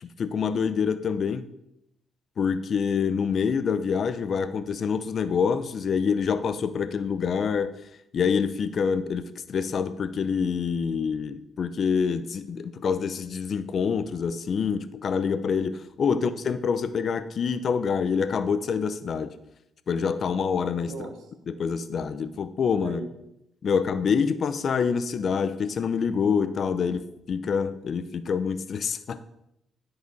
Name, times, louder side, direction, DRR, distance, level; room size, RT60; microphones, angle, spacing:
voice 1, 0.0-1.5 2.4-7.7 8.1-19.3 19.9-20.9 21.5-23.0 23.6-29.2, left 6 dB, 55° left, 12 dB, 0.6 m, -26 dB
voice 2, 20.9-21.3 22.7-23.2, right 4 dB, 85° right, 6 dB, 1.1 m, -38 dB
10.5 x 4.8 x 4.1 m, 0.84 s
cardioid pair, 90°, 0 cm